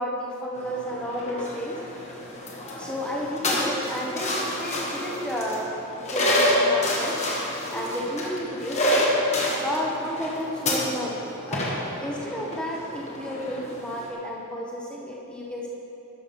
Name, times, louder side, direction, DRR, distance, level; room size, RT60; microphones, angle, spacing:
voice 1, 0.0-1.8 2.8-5.7 5.9-9.1 9.6-11.6 12.0-15.7, equal, 5° left, -3 dB, 1.0 m, -32 dB
sound 1, 0.5-14.1, left 1 dB, 30° left, 1.3 m, -28 dB
12.0 x 5.9 x 5.4 m, 3.0 s
head